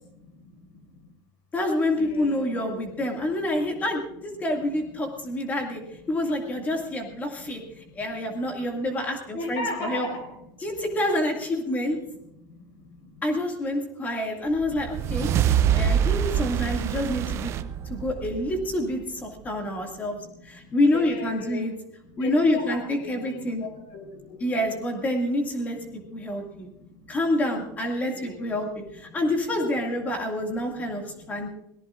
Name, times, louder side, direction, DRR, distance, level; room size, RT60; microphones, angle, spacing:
voice 1, 0.2-0.8 1.8-2.8 3.6-3.7 7.5-8.9 9.3-10.3 10.5-10.6 12.4-13.2 14.7-16.6 17.3-18.1 19.3-21.7 22.0-24.6 25.8-27.1 28.1-29.2 30.6-31.5, left 3 dB, 60° left, 5 dB, 4.2 m, -40 dB
voice 2, 1.5-5.8 6.1-10.1 10.6-12.0 13.2-15.3 15.7-17.5 17.9-20.2 20.4-21.7 22.2-23.6 24.4-25.8 26.1-26.7 27.1-31.0 31.3-31.5, left 1 dB, 15° left, 2 dB, 2.1 m, -27 dB
sound 1, 14.6-19.1, right 9 dB, 25° right, 0.4 m, -25 dB
26.0 x 18.5 x 2.5 m, 0.86 s
cardioid pair, 180°, 10 cm